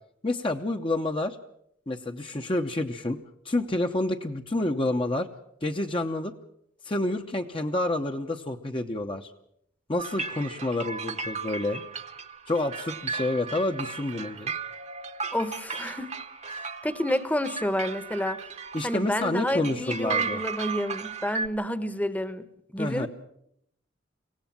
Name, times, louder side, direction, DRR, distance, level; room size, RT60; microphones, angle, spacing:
voice 1, 0.2-1.4 1.9-3.2 3.4-5.3 5.6-6.3 6.8-9.3 9.9-11.8 12.5-14.5 18.7-20.4 22.8-23.1, left 2 dB, 30° left, 4 dB, 0.9 m, -28 dB
sound 1, 10.0-21.5, right 5 dB, 40° right, 1.1 m, -35 dB
voice 2, 15.3-16.1 16.8-18.4 18.8-22.5 22.7-23.1, left 1 dB, 10° left, 13 dB, 1.0 m, -29 dB
24.5 x 17.0 x 7.4 m, 0.74 s
head